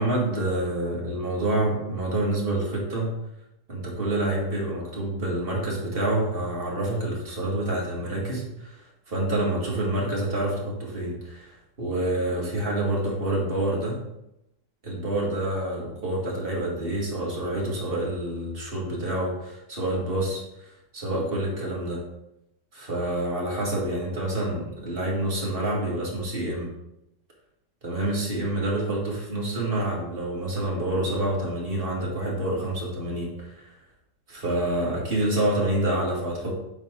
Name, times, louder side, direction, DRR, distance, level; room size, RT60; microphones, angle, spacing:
voice 1, 0.0-3.1 3.7-14.0 14.8-22.0 22.7-26.7 27.8-33.8 34.3-36.5, right 1 dB, 30° right, -4 dB, 1.9 m, -27 dB
7.6 x 4.6 x 3.7 m, 0.84 s
omnidirectional pair, 2.3 m